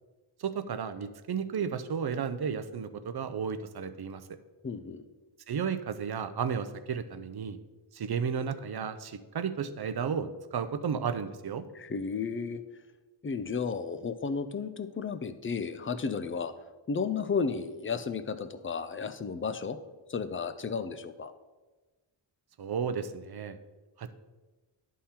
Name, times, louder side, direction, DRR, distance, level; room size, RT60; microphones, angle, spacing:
voice 1, 0.4-4.2 5.5-7.6 7.9-11.6 22.6-23.6 24.0-24.1, right 6 dB, 50° right, 10 dB, 0.6 m, -33 dB
voice 2, 4.6-5.0 11.7-12.6 13.2-16.5 16.9-19.8 20.1-21.3, left 5 dB, 25° left, 11 dB, 0.4 m, -33 dB
11.0 x 3.7 x 4.3 m, 1.2 s
wide cardioid pair, 95°, 48 cm